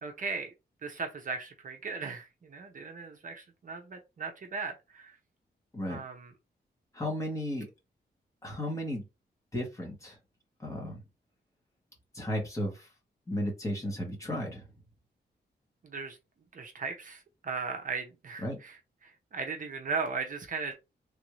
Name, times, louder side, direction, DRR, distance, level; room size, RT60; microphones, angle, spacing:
voice 1, 0.0-0.5 0.8-5.2 5.9-6.3 15.8-16.2 16.5-20.8, right 4 dB, 50° right, 0.7 m, -37 dB
voice 2, 6.9-7.7 8.4-9.0 9.5-10.1 10.6-11.0 12.1-12.9 13.3-14.6 18.4-18.6, left 1 dB, 20° left, 1.2 m, -34 dB
3.4 x 2.6 x 3.0 m
wide cardioid pair, 175°, 18 cm